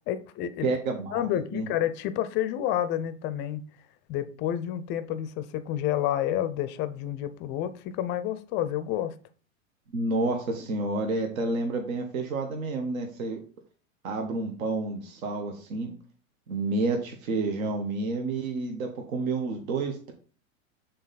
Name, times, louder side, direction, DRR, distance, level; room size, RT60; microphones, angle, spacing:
voice 1, 0.1-0.7 1.1-3.6 4.1-9.1, left 11 dB, 30° left, 0.4 m, -29 dB
voice 2, 0.6-1.3 1.5-1.7 9.9-13.4 14.0-15.9 16.5-20.1, right 3 dB, 75° right, 1.3 m, -29 dB
6.4 x 3.9 x 4.0 m
hypercardioid pair, 120°, 41 cm